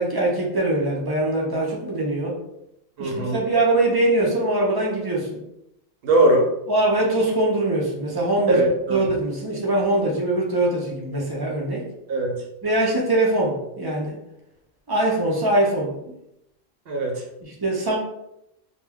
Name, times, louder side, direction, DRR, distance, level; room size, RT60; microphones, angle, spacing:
voice 1, 0.0-2.4 3.0-5.4 6.7-8.6 8.9-11.9 12.6-14.2 14.9-16.0 17.4-18.0, right 2 dB, 35° right, -2 dB, 0.4 m, -22 dB
voice 2, 3.0-3.4 6.0-6.5 8.5-9.1 12.1-12.4 16.9-17.2, right 1 dB, 70° right, 0 dB, 0.8 m, -20 dB
2.2 x 2.1 x 3.4 m, 0.83 s
omnidirectional pair, 1.0 m